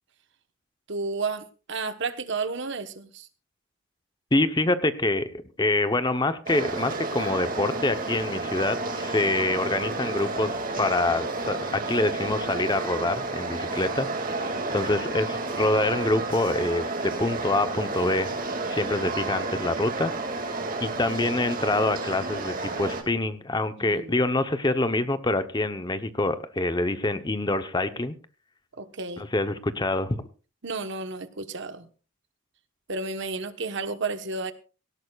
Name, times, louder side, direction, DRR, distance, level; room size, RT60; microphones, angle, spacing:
voice 1, 0.9-3.3 14.5-14.9 23.8-24.2 28.8-29.3 30.6-31.9 32.9-34.5, right 3 dB, 60° right, 10 dB, 1.2 m, -32 dB
voice 2, 4.3-5.3 5.6-18.3 18.7-20.1 20.4-28.1 29.2-30.3, left 2 dB, 20° left, 10 dB, 0.9 m, -26 dB
sound 1, 6.5-23.0, right 3 dB, 45° right, 2.3 m, -31 dB
17.5 x 17.0 x 2.4 m, 0.35 s
head